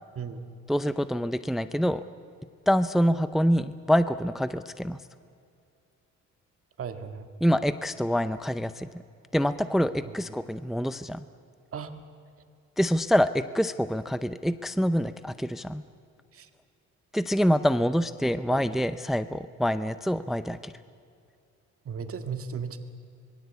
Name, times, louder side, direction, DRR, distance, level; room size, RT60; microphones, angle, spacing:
voice 1, 0.2-0.5 6.8-7.3 10.1-10.2 11.7-11.9 16.3-16.5 18.5-18.6 21.9-22.8, right 6 dB, 45° right, 8 dB, 1.9 m, -35 dB
voice 2, 0.7-2.0 2.7-5.0 7.4-8.9 9.3-11.2 12.8-15.8 17.1-20.7, equal, ahead, 13 dB, 0.6 m, -26 dB
25.5 x 21.5 x 8.3 m, 2.4 s
cardioid pair, 120°, 30 cm